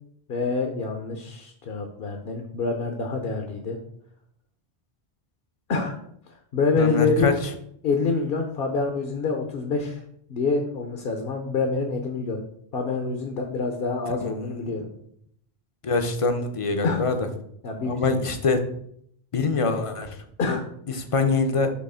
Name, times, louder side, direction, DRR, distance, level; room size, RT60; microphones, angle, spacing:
voice 1, 0.3-3.8 5.7-6.0 6.5-7.3 7.8-10.0 10.3-12.4 12.7-14.9 16.8-17.0 17.6-18.3 20.4-20.6, left 4 dB, 60° left, 4 dB, 0.9 m, -26 dB
voice 2, 6.8-7.3 14.2-14.7 15.8-17.3 17.8-18.6 19.3-20.6 20.9-21.7, left 4 dB, 35° left, 7 dB, 0.6 m, -24 dB
6.3 x 3.1 x 5.5 m, 0.69 s
omnidirectional pair, 1.1 m